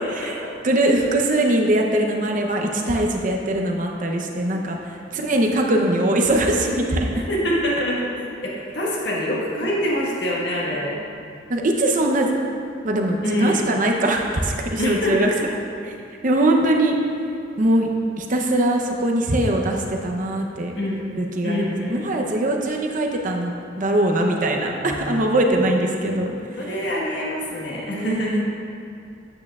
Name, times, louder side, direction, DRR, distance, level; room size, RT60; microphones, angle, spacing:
voice 1, 0.0-0.4 7.1-8.1 8.4-11.0 13.2-13.6 14.8-15.5 20.8-21.1 21.4-22.0 24.7-25.3 26.6-28.4, equal, 65° left, -5 dB, 1.5 m, -25 dB
voice 2, 0.6-7.2 11.5-12.3 12.8-15.3 15.9-16.0 16.2-17.0 17.6-17.9 18.2-20.8 21.2-26.4 27.9-28.4, right 1 dB, 45° right, 1 dB, 0.7 m, -21 dB
9.3 x 8.7 x 2.4 m, 2.5 s
head